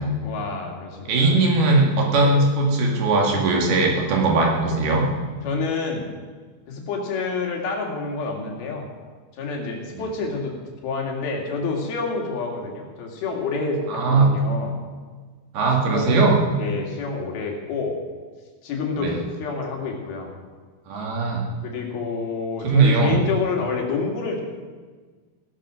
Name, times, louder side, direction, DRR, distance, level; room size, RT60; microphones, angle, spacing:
voice 1, 0.2-1.4 2.2-2.4 5.4-6.2 6.7-8.9 9.3-10.6 10.8-14.8 15.9-16.2 16.6-18.0 18.6-20.3 21.6-24.4, left 4 dB, 80° left, 1 dB, 4.0 m, -28 dB
voice 2, 1.1-5.0 13.9-14.3 15.5-16.4 19.0-19.2 20.9-21.5 22.6-23.2, right 3 dB, 85° right, -1 dB, 4.4 m, -19 dB
17.0 x 12.0 x 5.1 m, 1.4 s
omnidirectional pair, 4.3 m